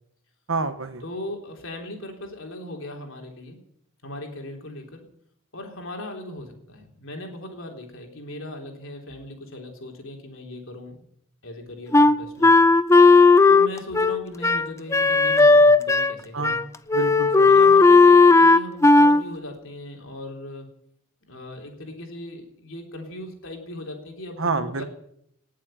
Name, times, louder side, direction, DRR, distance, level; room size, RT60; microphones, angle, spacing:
voice 1, 0.5-1.0 16.3-16.6 16.9-17.5 24.4-24.8, right 3 dB, 65° right, 10 dB, 1.4 m, -28 dB
voice 2, 1.0-3.6 4.0-5.0 5.5-11.0 11.4-12.5 13.5-16.6 17.5-20.7 21.3-24.9, left 1 dB, 60° left, 2 dB, 3.7 m, -38 dB
Wind instrument woodwind instrument, 11.9-16.2 16.4-16.6 16.9-19.2, left 3 dB, 15° left, 0.5 m, -15 dB
19.0 x 7.5 x 9.2 m, 0.71 s
head